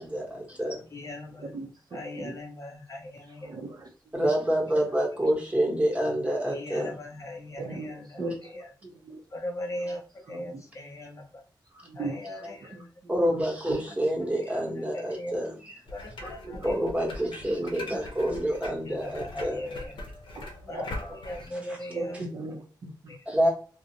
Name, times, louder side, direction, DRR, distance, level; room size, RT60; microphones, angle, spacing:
voice 1, 0.0-0.8 4.1-6.9 13.1-15.5 16.6-19.6 23.3-23.5, right 1 dB, 15° right, -1 dB, 0.9 m, -27 dB
voice 2, 0.9-1.6 1.9-3.6 6.5-8.7 9.3-11.4 11.9-12.9 14.3-15.4 15.9-16.9 18.8-20.0 20.7-22.2 23.1-23.4, left 1 dB, 40° left, 2 dB, 0.5 m, -39 dB
voice 3, 1.4-2.3 3.4-3.7 7.6-7.9 8.2-8.3 9.1-9.2 11.8-12.1 13.2-13.4 13.7-13.8 16.5-16.6 20.4-20.5 20.7-20.8 21.9-22.9, right 2 dB, 55° right, 3 dB, 0.5 m, -36 dB
sound 1, 15.9-21.5, left 2 dB, 85° left, 0.6 m, -41 dB
2.5 x 2.0 x 2.6 m, 0.40 s
wide cardioid pair, 120°, 8 cm